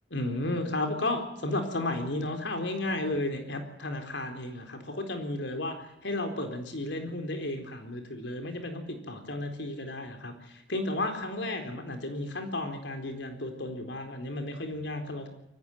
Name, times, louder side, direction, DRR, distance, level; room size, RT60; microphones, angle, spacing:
voice 1, 0.1-15.3, left 2 dB, 75° left, 6 dB, 4.1 m, -33 dB
23.5 x 16.0 x 9.3 m, 0.88 s
head